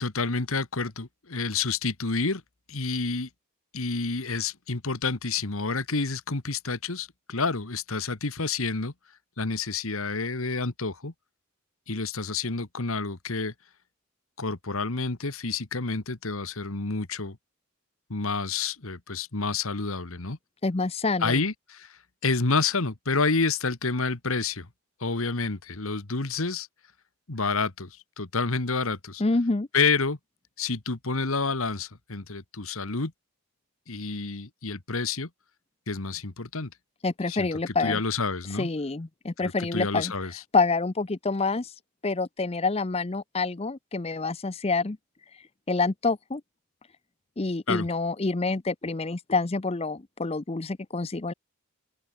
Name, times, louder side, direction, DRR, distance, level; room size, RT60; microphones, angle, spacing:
voice 1, 0.0-2.4 2.7-3.3 3.7-8.9 9.4-11.1 11.9-13.5 14.4-17.4 18.1-20.4 21.2-24.7 25.0-26.7 27.3-29.2 29.7-30.2 30.6-33.1 33.9-35.3 35.9-36.7 37.3-38.7 39.7-40.4 47.7-47.9, left 4 dB, 70° left, 1.7 m, -29 dB
voice 2, 20.6-21.4 29.2-29.7 37.0-38.0 38.5-40.1 40.5-41.7 42.0-45.0 45.3-46.4 47.4-51.3, left 3 dB, 25° left, 0.6 m, -27 dB
open air
head